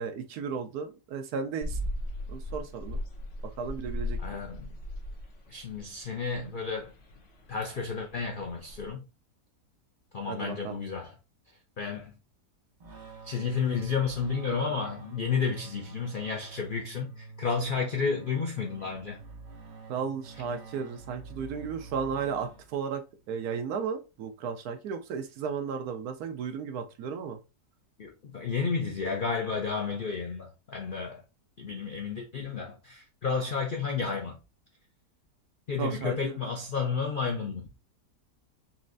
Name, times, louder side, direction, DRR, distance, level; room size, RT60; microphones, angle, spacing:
voice 1, 0.0-1.8 2.3-3.0 3.6-4.4 10.3-10.8 19.9-27.4 35.8-36.4, right 6 dB, 75° right, 1.1 m, -34 dB
sound 1, 1.6-8.9, left 1 dB, 55° left, 1.1 m, -38 dB
voice 2, 4.2-4.7 5.5-6.9 7.5-9.0 10.1-11.2 11.8-12.1 13.2-19.2 28.0-31.2 31.6-34.4 35.7-37.7, left 5 dB, 80° left, 0.4 m, -31 dB
sound 2, 12.8-23.1, right 3 dB, 45° right, 0.6 m, -47 dB
4.2 x 3.1 x 2.5 m
omnidirectional pair, 1.7 m